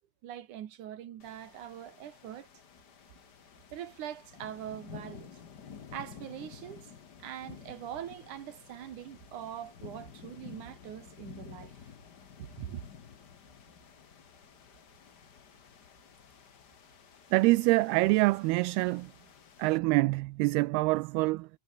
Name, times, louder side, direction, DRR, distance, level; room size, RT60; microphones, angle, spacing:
voice 1, 0.2-2.5 3.7-5.4 5.9-6.9 7.2-11.8 12.4-12.8, right 11 dB, 60° right, 2.6 m, -43 dB
sound 1, 1.2-19.8, left 7 dB, 70° left, 0.9 m, -52 dB
voice 2, 17.3-19.1 19.6-21.5, right 22 dB, 80° right, 2.5 m, -25 dB
omnidirectional pair, 4.7 m